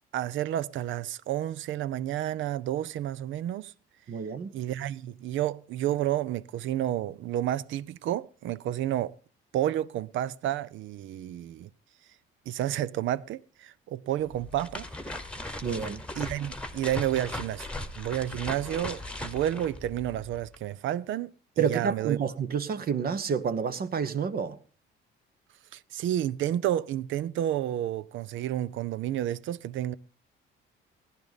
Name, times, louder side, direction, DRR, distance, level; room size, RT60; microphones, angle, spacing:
voice 1, 0.1-3.7 4.5-9.2 9.5-11.7 12.5-14.9 16.2-17.7 18.0-21.3 21.6-22.2 25.7-30.0, right 12 dB, 65° right, 0.6 m, -30 dB
voice 2, 4.1-4.5 15.6-16.0 21.6-24.6, right 7 dB, 45° right, 0.9 m, -29 dB
sound 1, 14.2-20.6, left 1 dB, 5° left, 1.2 m, -38 dB
15.5 x 10.5 x 4.0 m
cardioid pair, 95°, 21 cm